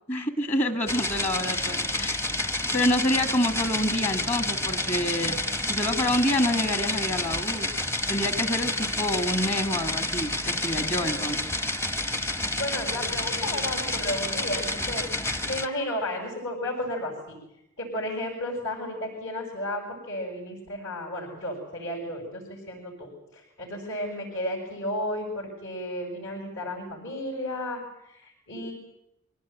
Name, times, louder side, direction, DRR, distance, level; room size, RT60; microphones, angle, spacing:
voice 1, 0.1-2.3 2.7-5.4 5.6-7.7 8.1-11.5, left 1 dB, 30° left, 8 dB, 1.6 m, -27 dB
sound 1, 0.9-15.7, left 2 dB, 15° left, 0.8 m, -29 dB
voice 2, 12.6-15.0 15.5-17.3 17.8-19.8 20.1-28.7, left 1 dB, 65° left, -4 dB, 6.8 m, -33 dB
24.5 x 17.5 x 9.2 m, 0.83 s
head